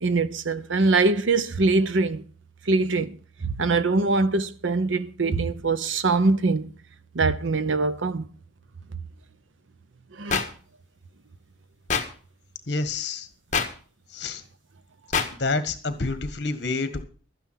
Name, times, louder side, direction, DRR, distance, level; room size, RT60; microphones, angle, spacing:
voice 1, 0.0-2.2 2.7-3.2 3.6-6.7 7.1-8.2 10.2-10.4, right 3 dB, 80° right, 0.8 m, -23 dB
sound 1, 10.3-10.4 11.9-12.0 13.5-13.7 15.1-15.3, left 5 dB, 40° left, 1.5 m, -23 dB
voice 2, 12.7-13.3 14.1-14.4 15.4-17.0, left 3 dB, 55° left, 1.5 m, -28 dB
12.5 x 9.3 x 5.7 m
head